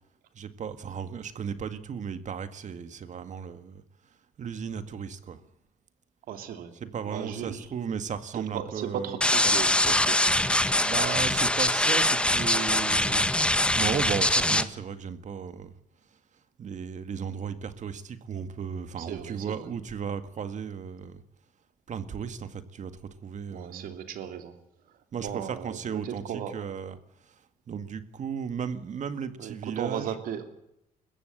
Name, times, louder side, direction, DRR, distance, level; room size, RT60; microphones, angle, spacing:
voice 1, 0.4-3.8 4.4-5.4 6.8-9.2 9.4-9.5 10.8-13.3 13.8-15.7 16.6-21.2 21.9-22.9 23.2-23.9 25.1-27.0 27.7-30.1, right 7 dB, 60° right, 11 dB, 2.0 m, -35 dB
voice 2, 6.3-6.7 7.0-7.7 8.3-10.3 19.0-19.7 23.5-24.5 25.2-26.6 29.4-30.4, right 9 dB, 85° right, 7 dB, 2.8 m, -36 dB
sound 1, 9.2-14.6, left 1 dB, 5° left, 1.5 m, -23 dB
21.5 x 15.0 x 9.1 m, 0.82 s
cardioid pair, 75°, 14 cm